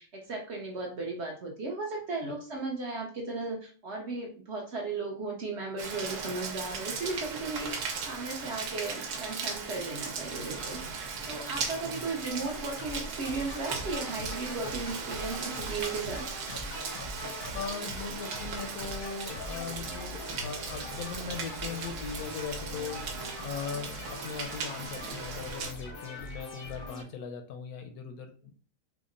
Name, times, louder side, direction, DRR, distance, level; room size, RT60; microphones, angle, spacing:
voice 1, 0.0-16.2, right 3 dB, 55° right, -1 dB, 0.8 m, -36 dB
Rain, 5.8-25.7, right 5 dB, 80° right, 1.2 m, -38 dB
sound 1, 12.5-27.0, left 2 dB, 50° left, 0.7 m, -42 dB
voice 2, 17.5-23.1 23.4-28.5, left 6 dB, 75° left, 5 dB, 1.0 m, -39 dB
3.6 x 2.1 x 3.7 m, 0.41 s
omnidirectional pair, 1.7 m